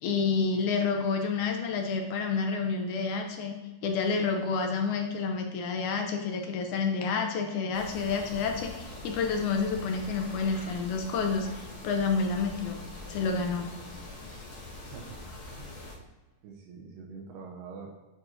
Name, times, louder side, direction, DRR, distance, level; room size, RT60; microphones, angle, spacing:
voice 1, 0.0-3.6 3.8-12.8 13.1-13.7, left 5 dB, 75° left, 3 dB, 1.9 m, -29 dB
sound 1, 7.7-16.0, left 2 dB, 60° left, 2.2 m, -43 dB
voice 2, 14.9-15.2 15.5-15.7 16.4-17.9, right 5 dB, 85° right, -1 dB, 2.4 m, -44 dB
8.9 x 4.4 x 2.6 m, 1.2 s
omnidirectional pair, 3.9 m